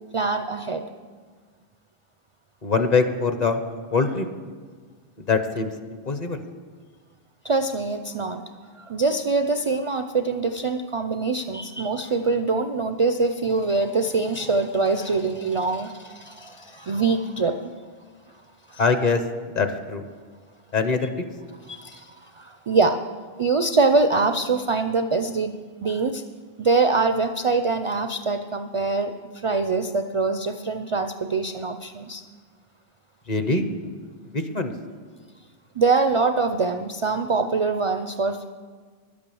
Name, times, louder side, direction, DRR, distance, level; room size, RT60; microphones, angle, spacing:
voice 1, 0.1-0.8 7.4-8.4 8.8-17.6 18.7-18.8 21.7-23.0 23.4-25.5 25.8-26.2 26.6-32.2 35.8-38.5, right 3 dB, 50° right, 8 dB, 0.4 m, -24 dB
voice 2, 2.6-3.6 3.9-4.3 5.3-5.7 6.1-6.4 18.8-19.2 19.5-20.0 20.7-21.1 33.3-33.7 34.3-34.7, left 4 dB, 45° left, 8 dB, 0.9 m, -22 dB
11.0 x 8.7 x 7.0 m, 1.5 s
omnidirectional pair, 1.1 m